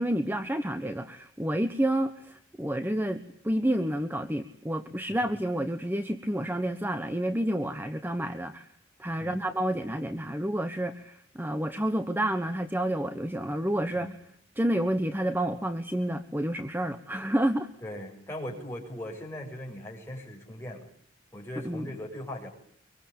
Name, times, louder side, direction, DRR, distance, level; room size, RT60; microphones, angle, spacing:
voice 1, 0.0-8.7 9.0-14.1 14.6-17.7 21.6-21.9, right 1 dB, 10° right, 9 dB, 1.3 m, -29 dB
voice 2, 17.8-20.9 21.3-22.5, left 1 dB, 15° left, 0 dB, 7.3 m, -39 dB
25.0 x 24.5 x 8.7 m, 0.67 s
head